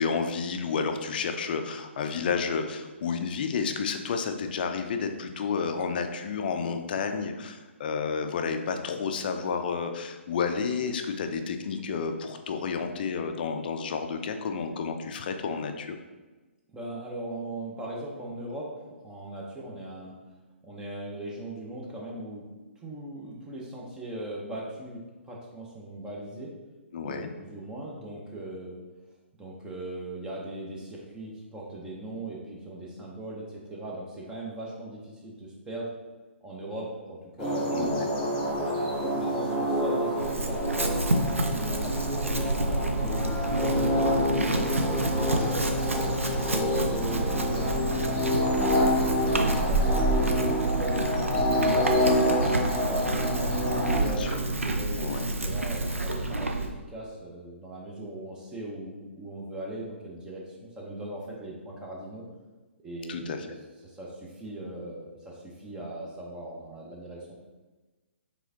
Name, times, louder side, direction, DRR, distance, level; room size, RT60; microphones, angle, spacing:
voice 1, 0.0-16.0 26.9-27.3 37.7-38.1 53.9-54.3 55.0-55.3 63.1-63.5, left 5 dB, 45° left, 7 dB, 0.4 m, -31 dB
voice 2, 16.7-18.7 19.0-20.1 20.6-22.4 22.8-26.5 27.0-28.8 29.4-35.9 36.4-40.8 41.4-45.8 46.5-48.8 49.5-55.1 55.4-62.2 62.8-63.5 63.8-67.3, right 1 dB, 10° right, -3 dB, 0.7 m, -39 dB
sound 1, 37.4-54.0, equal, 15° left, 1.3 m, -27 dB
Chewing mastication / Livestock farm animals working animals, 40.1-56.7, right 2 dB, 80° right, 0.5 m, -29 dB
sound 2, 43.9-56.7, right 3 dB, 35° right, 1.0 m, -39 dB
4.8 x 3.4 x 2.8 m, 1.2 s
figure-of-eight pair, 130°, 7 cm